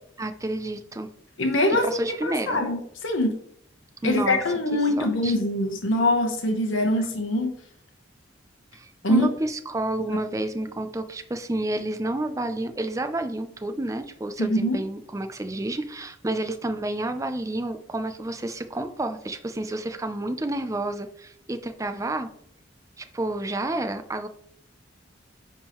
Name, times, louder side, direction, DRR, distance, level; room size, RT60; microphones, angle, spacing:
voice 1, 0.2-1.1 1.8-2.6 4.0-4.4 5.0-5.4 8.7-22.3 23.0-24.3, right 1 dB, 15° right, 8 dB, 0.5 m, -30 dB
voice 2, 1.4-3.3 4.0-7.5 9.0-9.3 14.4-14.8, left 1 dB, 90° left, 3 dB, 0.9 m, -23 dB
9.8 x 3.6 x 3.0 m, 0.66 s
head